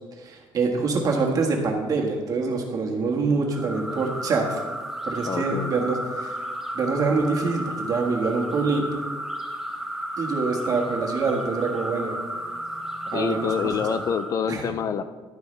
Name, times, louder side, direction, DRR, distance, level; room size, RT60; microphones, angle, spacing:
voice 1, 0.2-4.6 5.0-6.4 6.7-9.0 10.2-12.2 13.1-14.0 14.5-14.7, right 4 dB, 40° right, 0 dB, 1.6 m, -25 dB
sound 1, 3.5-14.4, right 1 dB, 5° right, 0.8 m, -33 dB
voice 2, 5.3-5.7 13.1-15.0, left 7 dB, 40° left, 11 dB, 0.4 m, -27 dB
11.5 x 9.3 x 3.3 m, 1.4 s
cardioid pair, 160°, 9 cm